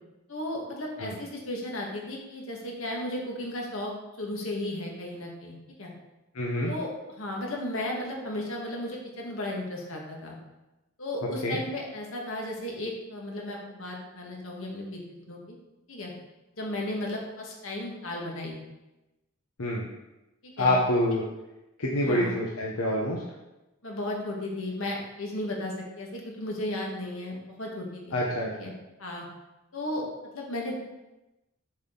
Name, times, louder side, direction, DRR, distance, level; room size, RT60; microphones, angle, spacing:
voice 1, 0.3-3.9 4.2-5.9 6.7-10.4 11.0-15.6 15.9-16.1 16.6-18.6 20.4-20.8 22.0-22.4 23.8-28.2 28.5-28.7 29.0-29.3 29.7-30.1 30.3-30.8, left 1 dB, 75° left, -1 dB, 1.8 m, -35 dB
voice 2, 6.3-6.7 11.4-11.6 19.6-19.9 20.6-21.2 21.8-23.2 28.1-28.5, left 1 dB, 90° left, -3 dB, 1.0 m, -26 dB
7.3 x 6.1 x 3.9 m, 0.99 s
head